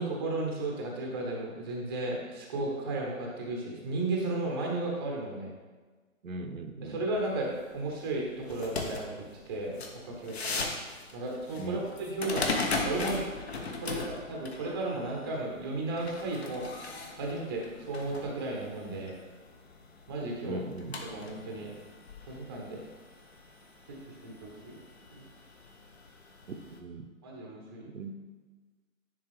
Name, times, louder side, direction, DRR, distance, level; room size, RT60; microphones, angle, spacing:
voice 1, 0.0-5.5 6.8-10.7 11.1-12.5 12.8-13.3 13.8-16.6 17.2-19.1 20.1-20.6 21.0-21.7 22.3-22.9 23.9-24.8 25.1-25.3 27.2-27.9, right 2 dB, 15° right, -1 dB, 0.7 m, -34 dB
voice 2, 6.2-7.0 11.6-11.9 20.5-21.0 26.5-27.1 27.9-28.1, right 2 dB, 70° right, 5 dB, 0.8 m, -39 dB
sound 1, 7.2-26.8, left 3 dB, 50° left, 0.9 m, -39 dB
9.6 x 3.6 x 3.4 m, 1.3 s
figure-of-eight pair, 140°, 42 cm